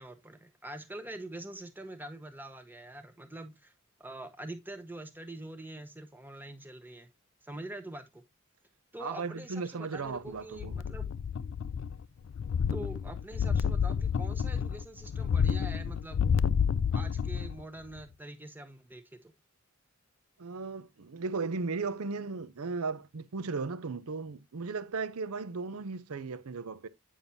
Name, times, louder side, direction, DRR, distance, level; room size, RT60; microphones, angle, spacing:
voice 1, 0.0-3.7 4.0-7.1 7.4-8.2 8.9-11.1 12.7-16.2 16.9-19.3, right 1 dB, 10° right, 0.8 m, -44 dB
voice 2, 9.0-10.8 20.4-26.9, right 4 dB, 85° right, 0.6 m, -36 dB
sound 1, 10.6-12.0 12.3-17.6 18.0-18.1, left 7 dB, 60° left, 0.3 m, -30 dB
8.9 x 5.5 x 2.7 m
head